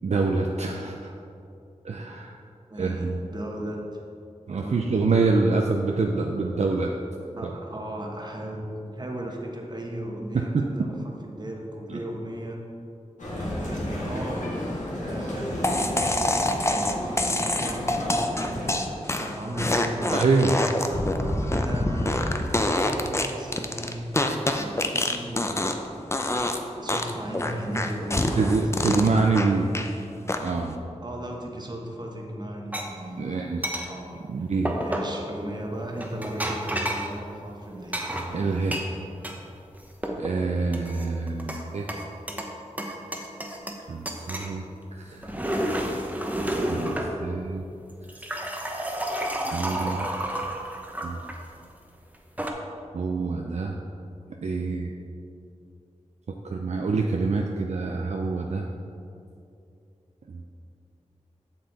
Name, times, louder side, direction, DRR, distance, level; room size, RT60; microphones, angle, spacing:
voice 1, 0.0-1.1 1.8-2.4 2.8-3.2 4.5-6.9 7.4-7.5 10.3-10.7 11.9-12.0 20.1-20.6 28.4-29.7 30.4-30.8 33.2-33.9 34.3-34.8 38.3-38.9 40.2-41.9 43.9-44.6 45.0-45.3 46.7-47.6 49.5-50.1 51.0-51.2 52.9-53.8 54.4-54.9 56.4-58.7 60.3-60.4, right 3 dB, 65° right, 2 dB, 0.5 m, -26 dB
voice 2, 2.7-3.8 4.5-5.0 7.3-12.6 13.4-14.4 15.0-17.9 18.6-20.3 20.8-26.0 26.7-29.1 31.0-33.5 33.9-34.5 34.8-38.0, right 1 dB, 35° right, 0 dB, 1.3 m, -36 dB
Male speech man speaking, 13.2-18.7, left 1 dB, 85° left, 1.8 m, -32 dB
sound 1, 15.6-25.9 26.1-26.6 26.9-29.9 30.3-30.7, left 1 dB, 20° left, 0.6 m, -26 dB
sound 2, 32.7-32.9 33.6-33.9 34.7-35.2 36.0-37.1 37.9-39.4 39.7-40.3 40.7-41.6 41.9-42.5 42.8-43.8 44.1-44.5 45.1-47.1 47.9-51.4 52.1-52.5, right 1 dB, 10° right, 0.9 m, -30 dB
7.9 x 6.5 x 4.0 m, 2.6 s
wide cardioid pair, 60°, 12 cm